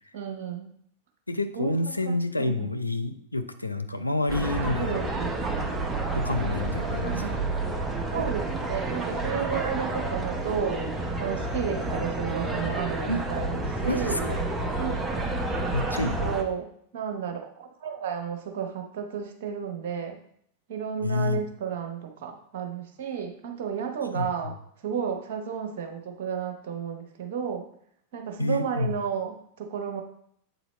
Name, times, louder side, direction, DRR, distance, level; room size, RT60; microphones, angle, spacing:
voice 1, 0.1-0.7 1.6-1.7 2.1-2.7 4.6-5.4 7.0-7.4 8.1-10.9 11.2-14.3 14.8-15.3 15.9-16.7 16.9-20.2 20.7-24.5 24.8-27.7 28.1-30.0, right 7 dB, 55° right, 4 dB, 0.9 m, -32 dB
voice 2, 1.3-5.1 6.1-7.2 13.1-13.2 13.8-14.4 15.7-16.3 21.0-21.4 24.1-24.5 28.4-29.0, left 2 dB, 85° left, 9 dB, 0.4 m, -28 dB
sound 1, 4.3-16.4, right 2 dB, 10° right, 0.7 m, -30 dB
7.8 x 4.0 x 3.1 m, 0.67 s
figure-of-eight pair, 90°, 0 cm